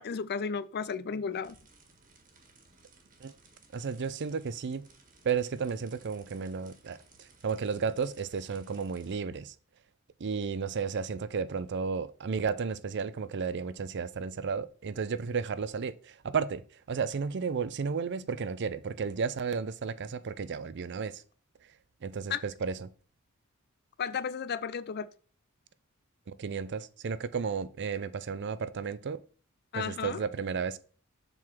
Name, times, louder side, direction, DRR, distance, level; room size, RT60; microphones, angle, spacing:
voice 1, 0.0-1.5 22.3-22.4 24.0-25.1 29.7-30.2, left 6 dB, 50° left, 0.4 m, -33 dB
sound 1, 1.4-9.1, right 4 dB, 40° right, 1.6 m, -60 dB
voice 2, 3.7-4.8 5.2-9.5 10.2-21.2 22.0-22.9 26.3-29.2 29.7-30.8, right 5 dB, 55° right, 0.5 m, -33 dB
7.5 x 3.9 x 6.1 m
head